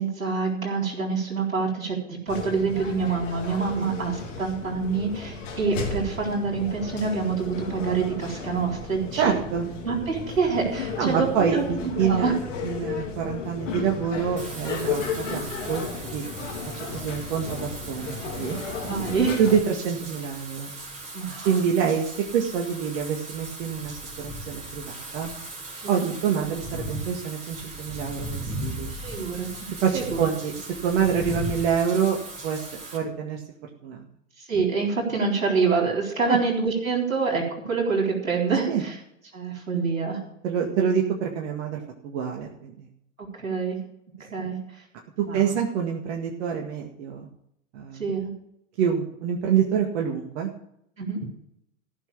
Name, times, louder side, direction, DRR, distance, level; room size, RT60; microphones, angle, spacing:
voice 1, 0.0-9.4 9.8-11.3 11.5-12.3 14.8-15.0 15.2-15.3 18.8-19.4 21.1-21.5 25.8-26.1 28.9-29.7 29.9-30.2 34.4-38.9 39.3-40.2 43.2-43.8 44.3-44.6 45.3-45.4 48.0-48.3 51.0-51.2, right 5 dB, 90° right, 0 dB, 4.0 m, -26 dB
sound 1, 2.3-19.6, left 5 dB, 70° left, 3.0 m, -34 dB
voice 2, 9.2-9.7 11.0-12.3 12.6-16.2 16.7-18.6 19.4-20.7 21.4-25.3 25.9-28.9 29.7-30.5 30.8-32.2 32.4-33.4 33.8-34.1 36.3-36.4 38.7-38.8 40.4-42.9 44.4-44.5 45.2-47.3 47.7-48.0 48.8-50.5, right 7 dB, 60° right, 1 dB, 2.0 m, -26 dB
Wind / Rain, 14.4-33.0, right 1 dB, 15° right, 3.8 m, -38 dB
15.0 x 6.1 x 6.8 m, 0.75 s
hypercardioid pair, 90°, 39 cm